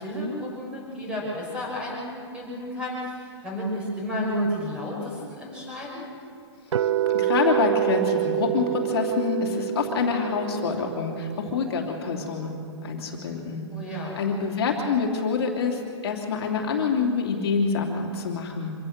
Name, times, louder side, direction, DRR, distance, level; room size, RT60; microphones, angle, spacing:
voice 1, 0.0-6.0 13.7-14.2, equal, 5° right, -3 dB, 5.9 m, -31 dB
voice 2, 6.7-12.5 12.8-18.7, left 5 dB, 55° left, 0 dB, 2.9 m, -27 dB
sound 1, 6.7-12.8, right 13 dB, 90° right, 0.8 m, -28 dB
25.5 x 16.5 x 6.6 m, 2.4 s
hypercardioid pair, 160°, 15 cm